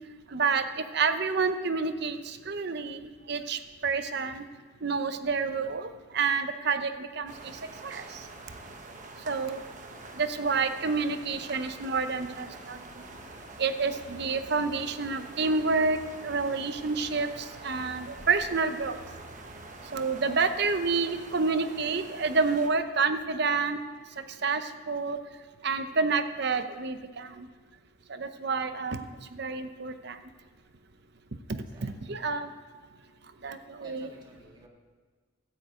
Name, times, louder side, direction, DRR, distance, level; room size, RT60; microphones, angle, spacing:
voice 1, 0.3-0.6 0.9-4.4 4.8-7.3 7.8-8.0 9.3-9.6 10.2-12.8 13.6-16.0 16.2-19.0 19.9-23.8 24.4-24.6 24.9-25.2 25.6-27.5 28.1-29.1 29.3-30.2 31.5-32.5 33.4-34.1, right 4 dB, 55° right, 10 dB, 0.8 m, -29 dB
sound 1, 7.3-22.7, right 2 dB, 40° right, 1.2 m, -46 dB
sound 2, 13.0-21.0, right 2 dB, 25° left, 4.1 m, -54 dB
voice 2, 31.5-32.2 33.8-34.7, right 1 dB, 25° right, -1 dB, 2.3 m, -53 dB
16.5 x 12.5 x 3.8 m, 1.5 s
head